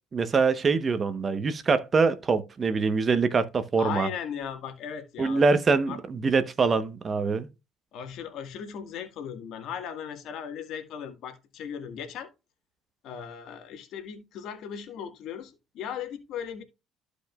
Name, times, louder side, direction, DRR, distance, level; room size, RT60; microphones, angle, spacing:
voice 1, 0.1-4.1 5.2-7.5, right 4 dB, 35° right, 1.0 m, -24 dB
voice 2, 3.8-5.4 5.7-6.0 7.9-12.3 13.0-16.6, left 8 dB, 65° left, 1.8 m, -37 dB
14.0 x 5.0 x 2.4 m
supercardioid pair, 100°, 0 cm